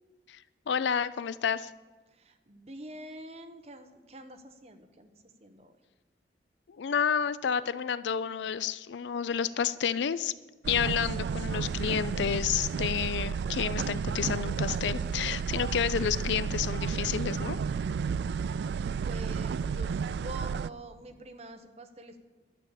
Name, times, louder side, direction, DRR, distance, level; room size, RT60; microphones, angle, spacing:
voice 1, 0.7-1.7 6.8-10.3 10.7-17.6, left 7 dB, 80° left, 17 dB, 0.4 m, -30 dB
voice 2, 2.2-5.1 5.4-5.7 19.0-22.2, right 1 dB, 35° right, 6 dB, 1.0 m, -46 dB
sound 1, 10.6-20.7, right 6 dB, 70° right, 0.3 m, -32 dB
12.0 x 7.0 x 8.3 m, 1.2 s
head